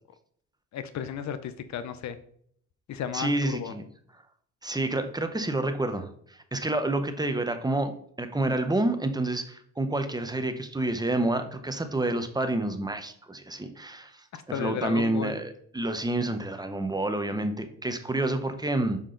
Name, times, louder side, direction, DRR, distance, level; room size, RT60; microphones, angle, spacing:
voice 1, 0.7-2.2 2.9-3.7 14.3-15.4, left 8 dB, 65° left, 12 dB, 0.7 m, -34 dB
voice 2, 3.1-3.8 4.6-7.9 8.2-19.0, right 2 dB, 15° right, 8 dB, 0.9 m, -29 dB
6.9 x 5.3 x 3.8 m, 0.64 s
cardioid pair, 90°, 30 cm